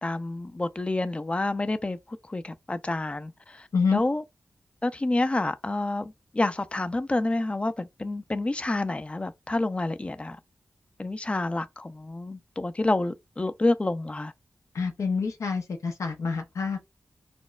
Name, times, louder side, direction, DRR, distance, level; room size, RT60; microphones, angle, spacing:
voice 1, 0.0-4.2 4.8-10.4 11.0-14.3, left 2 dB, 20° left, 0.4 m, -28 dB
voice 2, 14.7-16.9, left 5 dB, 85° left, 0.6 m, -27 dB
4.2 x 2.1 x 2.4 m
wide cardioid pair, 80°, 5 cm